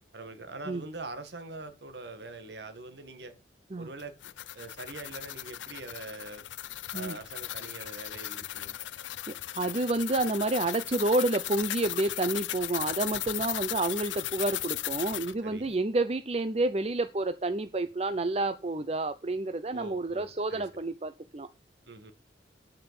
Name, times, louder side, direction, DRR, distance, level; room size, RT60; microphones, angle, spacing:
voice 1, 0.1-3.3 3.8-4.1 4.5-6.5 6.9-8.8 15.4-15.7 19.7-20.6 21.9-22.1, right 3 dB, 65° right, 2.0 m, -43 dB
sound 1, 4.0-15.3, left 14 dB, 85° left, 0.5 m, -37 dB
voice 2, 9.3-21.5, right 2 dB, 35° right, 0.6 m, -29 dB
9.1 x 8.8 x 7.0 m
head